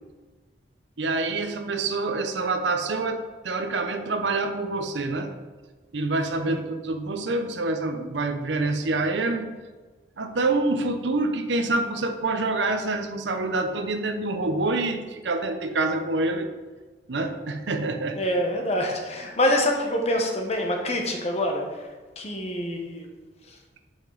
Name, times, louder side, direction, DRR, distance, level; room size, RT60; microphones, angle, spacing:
voice 1, 1.0-5.3 5.9-9.6 10.2-16.5 17.1-18.2, right 2 dB, 75° right, 7 dB, 0.7 m, -26 dB
voice 2, 18.2-21.8 22.2-23.1 23.5-23.6, left 1 dB, 35° left, 2 dB, 1.0 m, -26 dB
7.5 x 5.3 x 3.9 m, 1.3 s
head